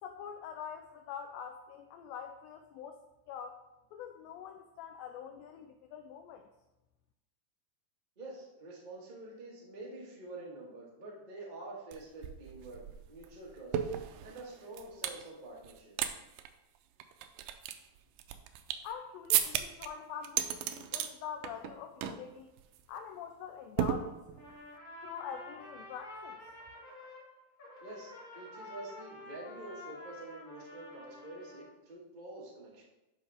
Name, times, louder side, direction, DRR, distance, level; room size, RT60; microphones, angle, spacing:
voice 1, 0.0-3.0 3.3-3.7 3.9-6.5 18.8-22.5 22.9-24.2 25.0-26.5, left 8 dB, 80° left, 6 dB, 2.2 m, -45 dB
voice 2, 8.2-13.8 14.2-16.0 27.8-32.8, right 2 dB, 45° right, -4 dB, 0.6 m, -47 dB
sound 1, 11.9-12.0 12.2-15.2 15.6-16.1 16.4-16.5 17.0-18.9 19.3-19.9 20.2-21.1 21.4-21.7 22.0-22.3 22.6-22.8 23.8-24.5, right 10 dB, 90° right, 2.5 m, -34 dB
Trumpet, 24.3-27.3 27.6-31.7, left 2 dB, 45° left, 1.2 m, -49 dB
11.5 x 5.1 x 3.5 m, 0.94 s
omnidirectional pair, 4.3 m